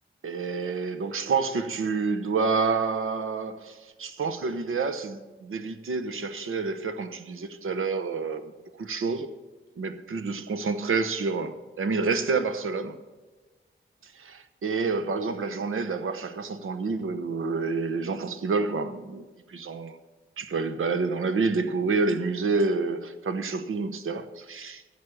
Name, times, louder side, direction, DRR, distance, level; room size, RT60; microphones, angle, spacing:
voice 1, 0.2-8.5 8.8-9.3 9.8-13.0 14.0-19.3 19.5-19.9 20.4-24.8, right 4 dB, 80° right, 1.0 m, -28 dB
13.5 x 7.4 x 6.5 m
wide cardioid pair, 140°, 21 cm